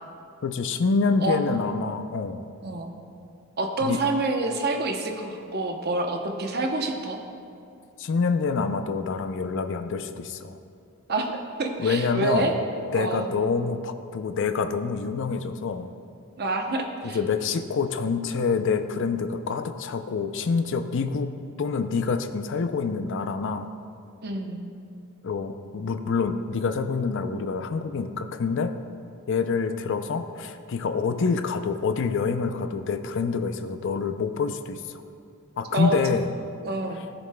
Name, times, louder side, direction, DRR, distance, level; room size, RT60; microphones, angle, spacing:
voice 1, 0.4-2.4 3.8-4.0 8.0-10.6 11.8-12.5 12.9-15.9 17.0-21.3 21.6-23.7 25.2-28.7 29.3-35.0 35.6-36.3, left 4 dB, 60° left, 8 dB, 0.5 m, -26 dB
voice 2, 3.6-7.2 11.1-12.5 12.9-13.3 16.4-17.2 24.2-24.6 35.7-36.2 36.6-37.1, right 2 dB, 50° right, 3 dB, 0.8 m, -27 dB
15.5 x 7.1 x 2.2 m, 2.4 s
head